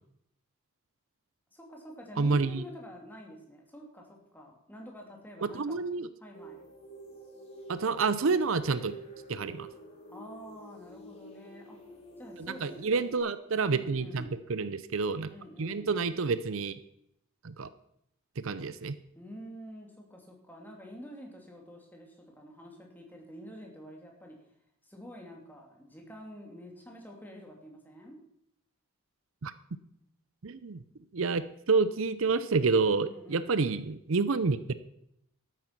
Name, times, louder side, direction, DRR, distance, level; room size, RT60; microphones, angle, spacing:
voice 1, 1.5-5.9 6.2-6.7 10.1-11.8 12.2-12.8 13.7-14.4 15.3-15.9 19.1-24.4 24.8-28.2 33.0-33.7, equal, 10° left, 0 dB, 2.6 m, -48 dB
voice 2, 2.2-2.6 5.5-6.1 7.7-8.9 9.3-9.7 12.4-15.3 15.6-16.7 17.4-17.7 18.4-19.0 29.4-29.5 30.4-30.8 31.1-34.7, right 4 dB, 70° right, 14 dB, 0.6 m, -28 dB
sound 1, 6.3-13.2, right 2 dB, 30° left, 2.6 m, -48 dB
12.5 x 9.2 x 5.9 m, 0.76 s
head